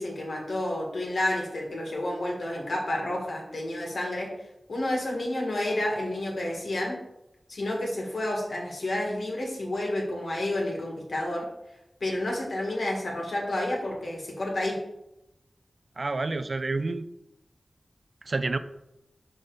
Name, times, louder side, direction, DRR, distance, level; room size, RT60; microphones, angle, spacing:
voice 1, 0.0-4.3 4.7-6.9 7.5-11.5 12.0-14.8, left 1 dB, 85° left, -1 dB, 1.6 m, -30 dB
voice 2, 16.0-17.0 18.3-18.6, right 3 dB, 60° right, 11 dB, 0.4 m, -28 dB
5.4 x 4.9 x 3.9 m, 0.89 s
wide cardioid pair, 50°, 0 cm